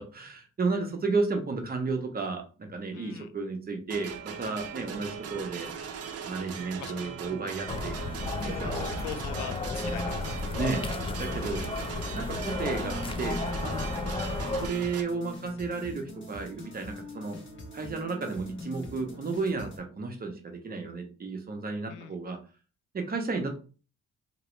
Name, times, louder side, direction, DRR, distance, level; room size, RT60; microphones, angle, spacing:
voice 1, 0.1-5.7 6.2-7.9 8.4-9.0 10.6-10.9 11.2-11.6 12.1-13.8 14.6-17.4 17.7-22.4 22.9-23.6, right 4 dB, 30° right, 4 dB, 0.9 m, -33 dB
voice 2, 2.9-3.3 6.8-7.1 8.4-10.4 11.4-11.7 21.9-22.1, left 9 dB, 80° left, 9 dB, 0.5 m, -43 dB
sound 1, 3.9-15.0, right 7 dB, 55° right, 0.6 m, -39 dB
sound 2, 7.7-14.7, left 3 dB, 20° left, 0.3 m, -33 dB
sound 3, 9.8-19.8, equal, 40° left, 1.2 m, -42 dB
2.9 x 2.9 x 3.1 m, 0.36 s
cardioid pair, 90°, 30 cm